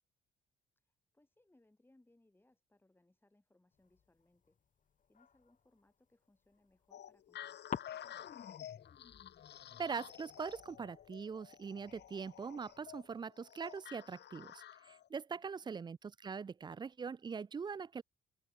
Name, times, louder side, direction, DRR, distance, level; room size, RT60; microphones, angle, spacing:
voice 1, 0.8-4.6 5.1-8.8 15.3-15.7, left 1 dB, 10° left, 3.5 m, -72 dB
sound 1, 3.7-5.9 6.4-7.3 7.7-13.2, left 7 dB, 40° left, 1.1 m, -51 dB
sound 2, 6.9-15.1, left 11 dB, 60° left, 0.9 m, -52 dB
voice 2, 9.8-18.0, right 5 dB, 20° right, 0.3 m, -42 dB
open air
cardioid pair, 90°, 20 cm